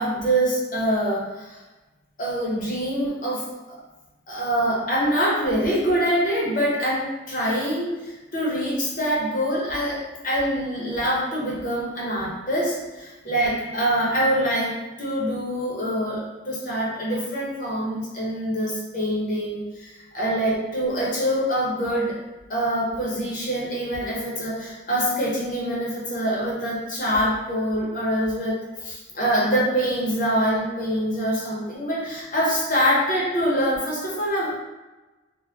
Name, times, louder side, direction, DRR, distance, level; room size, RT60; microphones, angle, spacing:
voice 1, 0.0-1.6 2.2-3.8 4.3-14.7 15.0-22.2 22.5-34.6, equal, 40° left, -5 dB, 0.7 m, -25 dB
2.7 x 2.1 x 3.3 m, 1.1 s
head